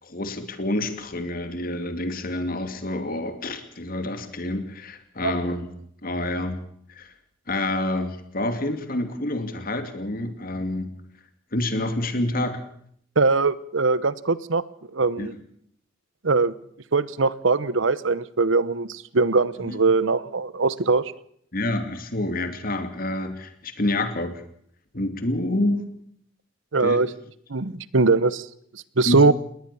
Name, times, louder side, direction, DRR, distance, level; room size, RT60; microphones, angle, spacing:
voice 1, 0.0-5.7 6.0-6.6 6.9-7.1 7.5-10.9 11.5-12.6 15.2-15.3 19.6-19.8 21.5-24.4 24.9-25.8 26.8-27.0 29.1-29.3, left 1 dB, 50° left, 8 dB, 2.7 m, -28 dB
voice 2, 13.2-14.6 14.9-15.3 16.2-16.5 16.9-21.1 26.7-27.1 27.5-28.5 28.7-29.3, right 3 dB, 85° right, 18 dB, 1.0 m, -21 dB
20.0 x 19.5 x 7.1 m, 0.67 s
head